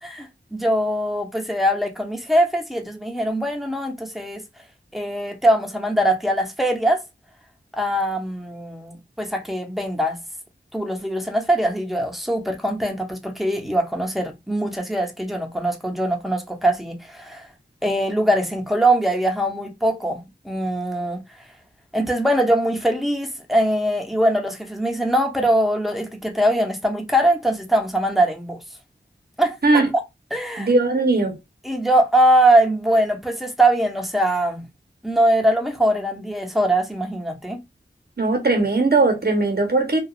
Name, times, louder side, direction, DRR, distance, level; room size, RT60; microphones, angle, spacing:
voice 1, 0.0-4.4 4.9-7.0 7.7-10.2 10.7-17.5 17.8-21.2 21.9-28.6 29.4-29.6 30.3-30.7 31.6-34.7 35.0-37.6, right 1 dB, ahead, 0.8 m, -22 dB
voice 2, 30.6-31.4 38.2-40.0, right 3 dB, 55° right, 1.0 m, -19 dB
2.9 x 2.4 x 2.4 m
wide cardioid pair, 50°, 20 cm